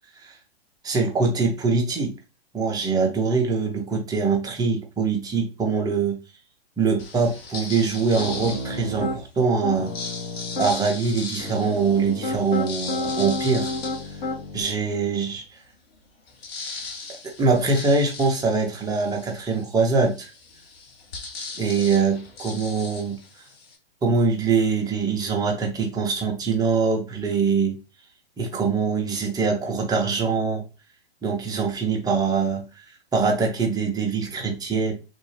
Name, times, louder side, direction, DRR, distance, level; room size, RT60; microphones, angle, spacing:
voice 1, 0.8-2.1 2.5-6.2 6.8-9.9 10.6-13.7 14.5-15.6 17.4-20.3 21.6-23.2 24.0-27.8 28.4-30.6 31.2-34.9, right 4 dB, 10° right, 1 dB, 0.7 m, -23 dB
sound 1, 7.0-9.1 9.7-14.9 15.4-15.5 15.7-23.8, left 4 dB, 70° left, 1.2 m, -38 dB
Piano, 8.1-9.2 9.6-10.7 11.4-14.6, left 2 dB, 45° left, 2.0 m, -30 dB
3.6 x 2.7 x 3.1 m, 0.31 s
hypercardioid pair, 125°, 31 cm